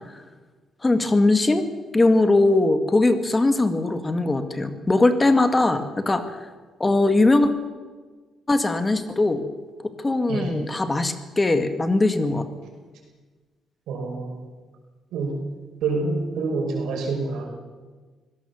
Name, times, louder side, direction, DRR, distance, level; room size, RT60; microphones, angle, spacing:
voice 1, 0.8-1.6 1.9-6.5 6.8-7.5 8.5-9.5 10.0-12.5, left 2 dB, 20° left, 9 dB, 2.0 m, -20 dB
voice 2, 13.9-14.4 15.1-15.4 15.8-17.5, right 3 dB, 85° right, 2 dB, 5.9 m, -27 dB
24.5 x 17.5 x 7.3 m, 1.4 s
cardioid pair, 90°, 0 cm